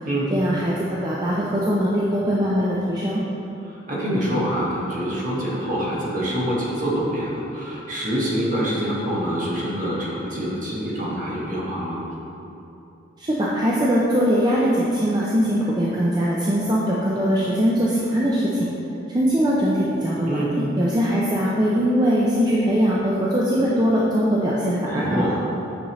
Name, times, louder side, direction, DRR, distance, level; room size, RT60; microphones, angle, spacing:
voice 1, 0.3-3.2 13.2-18.4 19.1-20.4 20.8-25.3, equal, 20° right, -6 dB, 0.5 m, -21 dB
voice 2, 3.7-12.0 20.3-20.5 24.8-25.4, equal, 40° right, -5 dB, 1.4 m, -25 dB
8.7 x 5.3 x 3.1 m, 2.9 s
head